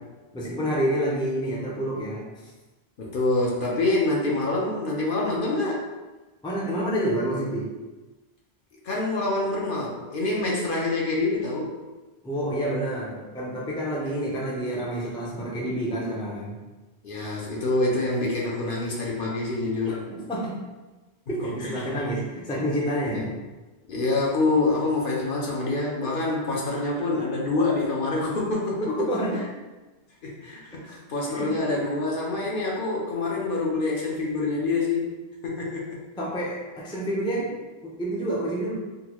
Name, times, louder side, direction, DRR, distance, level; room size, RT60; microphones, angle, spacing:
voice 1, 0.3-2.2 6.4-7.7 12.2-16.6 19.9-20.0 20.3-20.6 21.3-23.3 28.9-29.4 30.9-31.0 31.3-31.5 36.2-38.7, right 1 dB, 5° left, -5 dB, 0.4 m, -28 dB
voice 2, 3.0-5.9 8.8-11.8 14.0-14.1 17.0-20.0 21.6-21.9 23.0-23.3 23.9-28.9 30.2-35.2 35.4-36.0, left 2 dB, 60° left, -3 dB, 0.8 m, -26 dB
3.8 x 2.2 x 2.9 m, 1.2 s
omnidirectional pair, 1.1 m